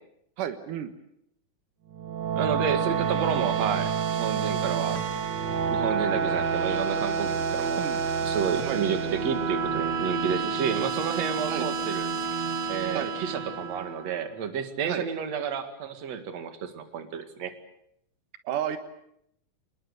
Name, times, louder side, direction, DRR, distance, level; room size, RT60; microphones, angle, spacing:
voice 1, 0.4-0.9 7.8-8.0 8.6-8.8 11.5-11.7 12.9-13.1 14.8-15.0 18.5-18.8, right 10 dB, 85° right, 9 dB, 2.9 m, -31 dB
sound 1, 1.9-14.3, right 6 dB, 40° right, 1.9 m, -29 dB
voice 2, 2.4-5.0 5.7-7.8 8.2-12.1 12.7-17.5, right 7 dB, 60° right, 8 dB, 3.1 m, -31 dB
27.0 x 20.5 x 8.2 m, 0.75 s
omnidirectional pair, 3.6 m